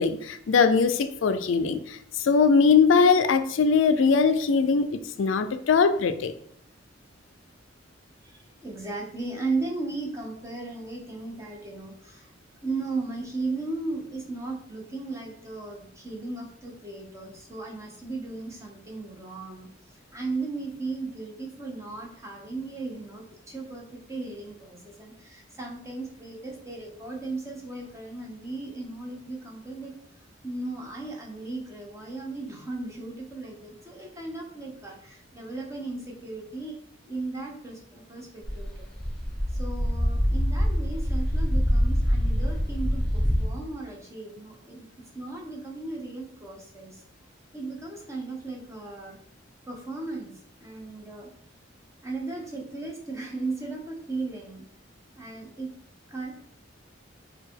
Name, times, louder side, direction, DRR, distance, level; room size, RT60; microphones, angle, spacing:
voice 1, 0.0-6.3, left 5 dB, 75° left, 10 dB, 0.4 m, -21 dB
voice 2, 8.2-12.3 12.6-36.8 37.1-38.9 39.5-44.9 45.1-47.0 47.5-49.2 49.6-51.3 52.0-54.6 55.1-55.7 56.1-56.3, right 3 dB, 15° right, -1 dB, 1.0 m, -36 dB
sound 1, 38.4-43.5, equal, 5° left, 1.2 m, -25 dB
4.7 x 2.3 x 4.6 m, 0.64 s
head